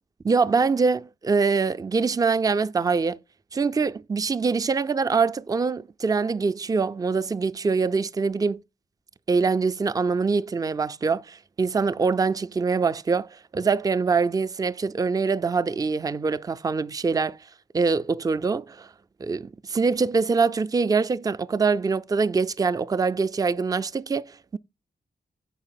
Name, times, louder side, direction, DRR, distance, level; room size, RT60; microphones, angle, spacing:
voice 1, 0.2-3.2 3.5-8.6 9.3-17.4 17.7-18.9 19.2-24.6, right 4 dB, 20° right, 0.3 m, -24 dB
6.0 x 4.5 x 5.7 m
cardioid pair, 85°, 18 cm